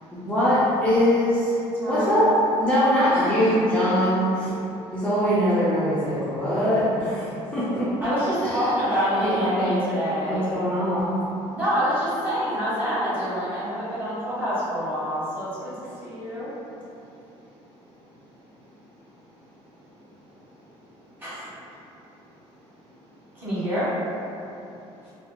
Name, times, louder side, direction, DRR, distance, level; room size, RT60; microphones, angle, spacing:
voice 1, 0.1-1.6 1.9-2.3 2.6-4.5 4.9-7.2 7.5-7.9 8.4-8.7 9.4-9.7 10.3-11.1, equal, 10° left, -12 dB, 0.4 m, -22 dB
voice 2, 1.8-2.3 3.1-3.9 8.0-10.5 11.5-16.5 21.2-21.4 23.3-23.9, equal, 15° right, -13 dB, 1.2 m, -27 dB
voice 3, 15.5-16.8 17.1-18.0 18.3-19.1 19.6-21.1 21.8-22.2 22.5-23.0 24.4-25.1, equal, 55° right, -9 dB, 0.7 m, -54 dB
2.8 x 2.3 x 2.4 m, 2.8 s
cardioid pair, 170°, 11 cm